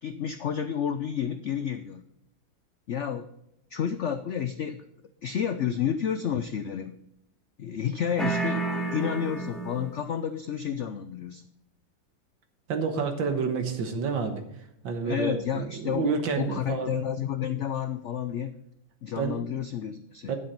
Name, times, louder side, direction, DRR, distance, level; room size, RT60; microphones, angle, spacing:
voice 1, 0.0-2.0 2.9-3.3 3.7-4.9 5.2-7.0 7.6-11.4 15.0-18.5 19.0-20.3, left 8 dB, 80° left, 10 dB, 0.6 m, -30 dB
sound 1, 8.2-10.1, right 3 dB, ahead, 1.5 m, -30 dB
voice 2, 12.7-14.4 14.8-16.9 19.2-19.5 20.3-20.4, right 5 dB, 85° right, 6 dB, 2.0 m, -29 dB
11.0 x 7.7 x 5.3 m, 0.81 s
omnidirectional pair, 2.0 m